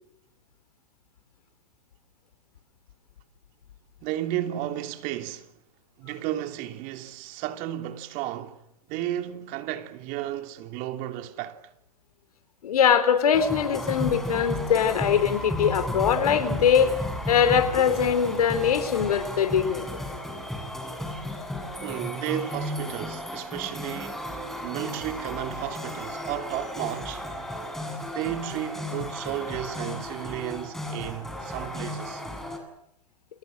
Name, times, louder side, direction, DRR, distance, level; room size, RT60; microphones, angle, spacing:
voice 1, 4.0-5.5 6.0-8.6 8.9-11.6 21.8-24.3 24.6-27.3 28.1-32.2, right 12 dB, 45° right, 3.0 m, -33 dB
voice 2, 12.6-16.9 17.3-19.9, left 7 dB, 75° left, 4.4 m, -22 dB
sound 1, 13.3-32.6, left 1 dB, ahead, 7.7 m, -34 dB
30.0 x 28.0 x 6.4 m
hypercardioid pair, 115°, 19 cm